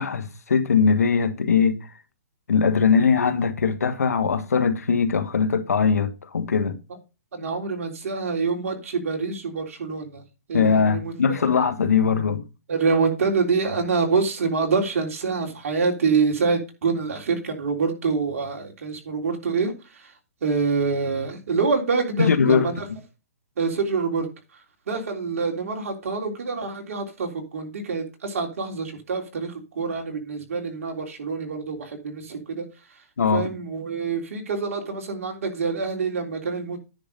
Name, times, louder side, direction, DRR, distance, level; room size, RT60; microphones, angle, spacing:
voice 1, 0.0-1.8 2.5-6.8 10.5-12.4 22.2-22.6 33.2-33.5, left 6 dB, 90° left, 1.4 m, -21 dB
voice 2, 7.3-10.2 10.5-11.4 12.7-20.1 20.4-22.9 23.6-24.3 24.9-32.7 33.3-36.8, right 4 dB, 65° right, 3.6 m, -26 dB
10.0 x 5.1 x 5.3 m
hypercardioid pair, 145°, 8 cm